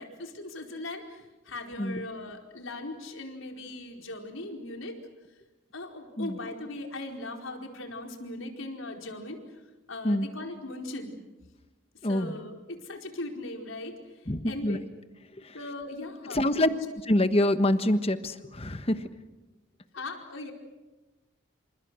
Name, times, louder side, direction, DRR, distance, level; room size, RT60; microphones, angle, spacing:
voice 1, 0.0-4.9 5.7-9.4 9.9-11.2 12.0-14.0 14.4-14.8 15.5-16.8 19.9-20.5, left 2 dB, 85° left, 3 dB, 4.7 m, -39 dB
voice 2, 12.0-12.3 14.3-14.8 16.3-16.7 17.1-19.0, left 1 dB, 30° left, 10 dB, 1.3 m, -25 dB
29.5 x 27.5 x 6.4 m, 1.1 s
head